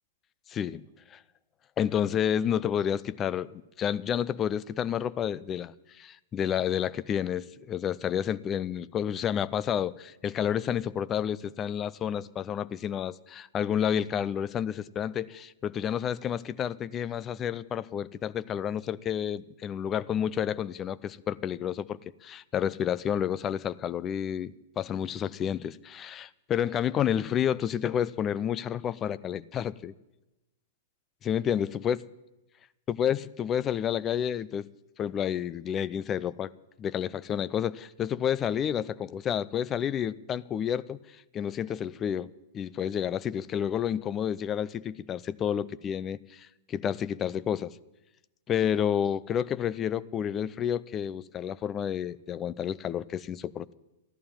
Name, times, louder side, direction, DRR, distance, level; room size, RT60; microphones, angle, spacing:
voice 1, 0.5-0.8 1.1-1.2 1.8-29.9 31.2-32.0 32.9-34.7 35.0-36.5 36.8-41.0 41.3-42.3 42.5-47.8 48.5-53.7, left 9 dB, 25° left, 0.5 m, -30 dB
14.0 x 11.0 x 9.1 m
figure-of-eight pair, 105°, 0 cm